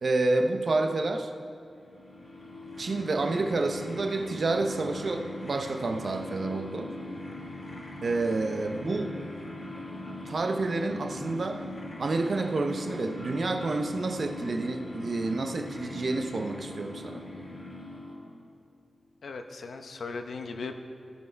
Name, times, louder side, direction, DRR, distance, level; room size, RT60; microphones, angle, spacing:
voice 1, 0.0-1.3 2.8-6.9 8.0-9.2 10.3-11.7 12.0-17.2, right 3 dB, 60° right, 5 dB, 0.8 m, -29 dB
sound 1, 1.7-18.4, left 1 dB, 55° left, 2.0 m, -41 dB
voice 2, 19.2-20.7, left 4 dB, 80° left, 6 dB, 0.7 m, -37 dB
16.5 x 5.6 x 4.6 m, 2.5 s
cardioid pair, 70°, 0 cm